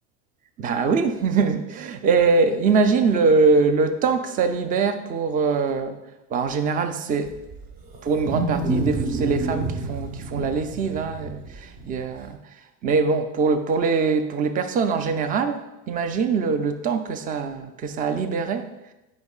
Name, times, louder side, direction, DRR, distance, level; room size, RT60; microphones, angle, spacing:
voice 1, 0.6-6.0 6.3-7.4 8.0-12.4 12.8-18.7, right 4 dB, 20° right, 9 dB, 0.3 m, -23 dB
Wild animals, 7.3-12.3, right 2 dB, 45° right, 1.2 m, -28 dB
9.3 x 5.3 x 2.4 m, 0.99 s
hypercardioid pair, 95°, 47 cm